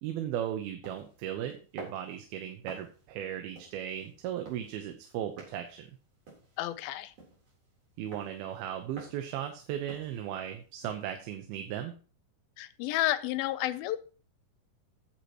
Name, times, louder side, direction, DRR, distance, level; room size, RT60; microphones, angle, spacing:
voice 1, 0.0-5.9 8.0-11.9, right 10 dB, 90° right, 6 dB, 2.9 m, -36 dB
sound 1, 0.8-11.1, right 2 dB, 45° right, 4.7 m, -52 dB
voice 2, 6.6-7.1 12.6-14.0, left 15 dB, 90° left, 13 dB, 2.5 m, -31 dB
14.0 x 8.5 x 3.0 m, 0.38 s
omnidirectional pair, 4.2 m